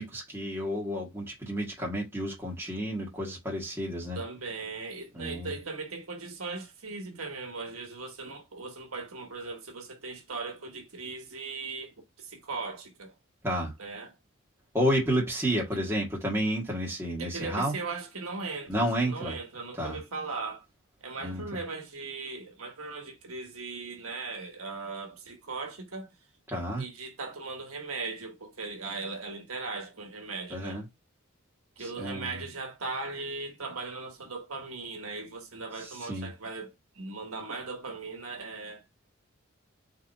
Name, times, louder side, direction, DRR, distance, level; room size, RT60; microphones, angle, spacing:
voice 1, 0.0-4.2 5.1-5.5 13.4-13.7 14.7-17.7 18.7-19.3 19.8-20.0 21.2-21.4 26.5-26.8 30.5-30.8 31.8-32.4 36.0-36.3, equal, 10° right, 1.6 m, -30 dB
voice 2, 4.1-13.1 13.8-14.1 15.7-15.9 17.2-20.6 21.0-26.1 26.8-30.8 31.8-38.8, right 3 dB, 85° right, 1.3 m, -38 dB
3.9 x 3.2 x 3.9 m
head